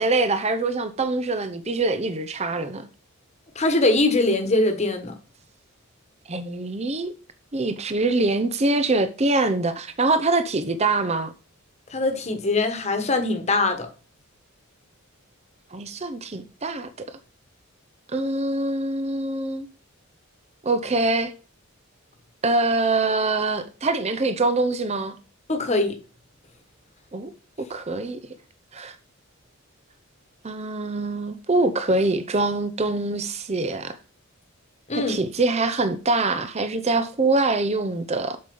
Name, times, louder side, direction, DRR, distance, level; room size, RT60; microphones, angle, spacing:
voice 1, 0.0-2.9 6.3-7.1 7.5-11.3 15.7-16.9 18.1-19.7 20.6-21.3 22.4-25.1 27.1-27.3 27.7-28.2 28.7-28.9 30.4-34.0 35.1-38.4, right 2 dB, 30° right, 0.7 m, -24 dB
voice 2, 3.5-5.1 11.9-13.9 25.5-26.0 34.9-35.2, left 2 dB, 30° left, 1.4 m, -22 dB
7.9 x 5.0 x 5.4 m
head